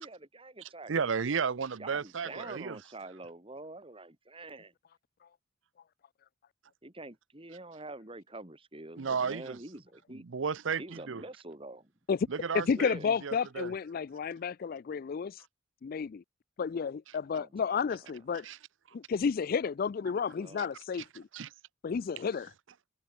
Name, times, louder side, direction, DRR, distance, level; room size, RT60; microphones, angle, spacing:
voice 1, 0.0-0.9 1.8-4.7 6.8-10.3 10.8-11.9 12.7-13.1 17.3-17.5 20.0-20.7, right 2 dB, 30° right, 2.9 m, -46 dB
voice 2, 0.9-2.8 9.0-9.6 10.3-10.8 11.1-11.2 12.3-12.9 13.2-13.7 18.4-18.6 18.9-19.0 20.6-20.7 21.3-21.5, right 6 dB, 70° right, 0.6 m, -33 dB
voice 3, 12.5-15.4 15.8-16.2 16.6-18.5 18.9-21.2 21.8-22.5, left 6 dB, 45° left, 0.3 m, -31 dB
head